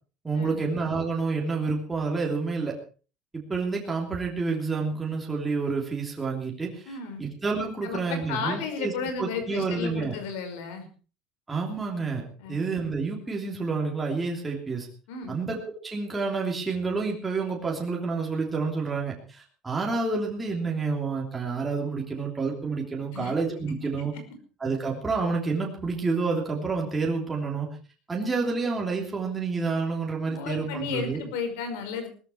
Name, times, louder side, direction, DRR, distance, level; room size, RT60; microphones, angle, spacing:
voice 1, 0.2-2.8 3.3-6.9 7.2-8.9 9.2-10.2 11.5-14.9 15.3-15.6 15.8-24.1 24.6-27.7 28.1-31.2, right 4 dB, 10° right, -1 dB, 3.1 m, -29 dB
voice 2, 6.9-7.2 7.8-10.9 12.4-12.6 15.1-15.4 23.1-23.3 30.3-32.1, left 5 dB, 85° left, 7 dB, 5.4 m, -33 dB
19.5 x 13.5 x 4.6 m, 0.38 s
cardioid pair, 165°, 0 cm